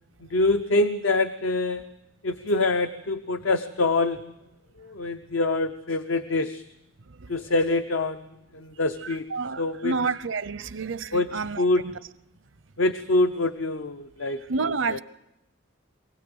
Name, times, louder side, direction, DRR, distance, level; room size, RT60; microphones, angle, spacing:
voice 1, 0.3-1.8 2.2-4.2 4.8-6.6 7.3-8.3 8.5-9.2 9.6-10.0 11.1-11.3 11.6-11.8 12.8-14.4 14.9-15.0, left 2 dB, 80° left, 0.8 m, -25 dB
voice 2, 9.0-11.9 14.5-15.0, right 4 dB, 75° right, 0.7 m, -29 dB
24.0 x 17.0 x 7.9 m
head